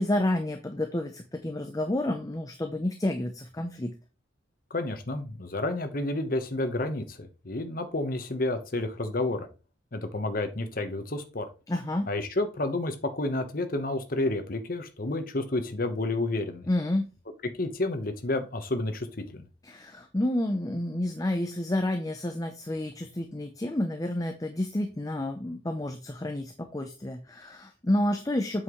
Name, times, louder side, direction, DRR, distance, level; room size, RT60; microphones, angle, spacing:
voice 1, 0.0-3.9 11.7-12.1 16.7-17.1 19.6-28.6, left 1 dB, 20° left, 5 dB, 0.6 m, -30 dB
voice 2, 4.7-9.5 9.9-11.5 12.1-16.7 17.6-19.5, left 2 dB, 50° left, 7 dB, 1.1 m, -30 dB
8.0 x 5.8 x 3.1 m, 0.32 s
head